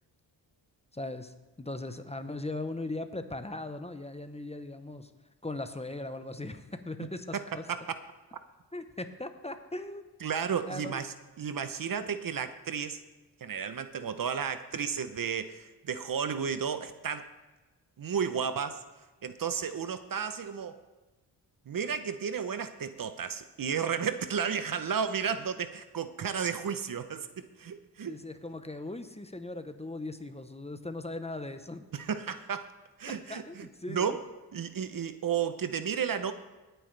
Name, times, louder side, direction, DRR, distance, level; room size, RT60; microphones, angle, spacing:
voice 1, 0.9-5.1 5.4-7.6 8.7-10.1 10.7-11.0 28.1-31.8 33.1-34.2, left 2 dB, 15° left, 8 dB, 0.9 m, -39 dB
voice 2, 7.0-7.4 7.7-7.8 10.2-13.0 13.4-17.3 18.0-18.8 19.2-20.8 21.7-28.1 31.9-32.7 33.0-34.2 34.5-36.3, right 7 dB, 50° right, 10 dB, 0.9 m, -33 dB
19.0 x 9.1 x 3.4 m, 1.2 s
cardioid pair, 70°, 42 cm